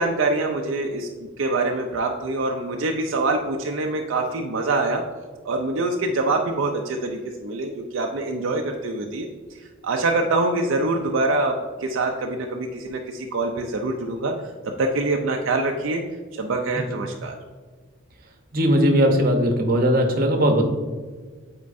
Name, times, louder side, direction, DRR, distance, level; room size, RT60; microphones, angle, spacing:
voice 1, 0.0-5.0 5.4-14.3 14.8-16.0 16.3-17.4, right 2 dB, 65° right, 2 dB, 0.5 m, -25 dB
voice 2, 18.5-20.6, equal, 45° right, 3 dB, 0.8 m, -19 dB
8.4 x 4.4 x 2.5 m, 1.5 s
head